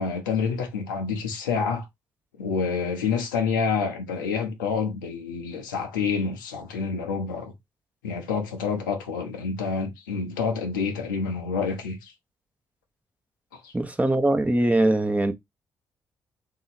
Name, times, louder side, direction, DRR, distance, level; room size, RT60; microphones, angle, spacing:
voice 1, 0.0-1.9 2.4-7.5 8.0-12.1 13.6-13.7, left 5 dB, 85° left, 0.9 m, -28 dB
voice 2, 13.7-15.3, right 1 dB, 15° right, 0.9 m, -22 dB
3.8 x 3.0 x 4.1 m
figure-of-eight pair, 40°, 10 cm